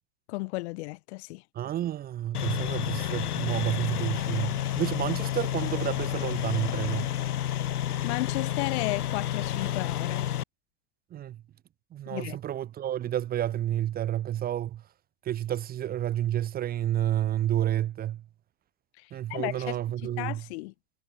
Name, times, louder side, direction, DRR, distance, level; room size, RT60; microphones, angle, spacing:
voice 1, 0.3-1.4 8.0-10.3 12.1-12.4 19.0-19.8 20.2-20.7, left 23 dB, 50° left, 0.6 m, -34 dB
voice 2, 1.5-7.1 11.1-11.4 11.9-14.8 15.2-18.2 19.1-20.4, right 12 dB, 20° right, 0.7 m, -30 dB
sound 1, 2.3-10.4, left 11 dB, 85° left, 1.4 m, -30 dB
hypercardioid pair, 110°, 44 cm